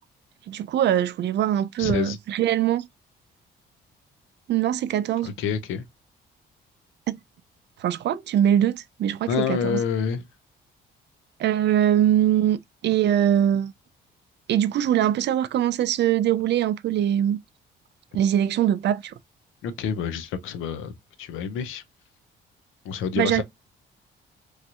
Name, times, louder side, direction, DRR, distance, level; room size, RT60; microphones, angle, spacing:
voice 1, 0.5-2.8 4.5-5.3 7.1-7.2 7.8-9.8 11.4-13.7 14.5-17.4 18.1-19.1 23.2-23.4, right 11 dB, 60° right, 0.4 m, -22 dB
voice 2, 1.8-2.2 5.2-5.8 9.3-10.2 19.6-21.8 22.8-23.4, left 7 dB, 90° left, 0.6 m, -28 dB
3.1 x 2.8 x 2.4 m
cardioid pair, 90°, 20 cm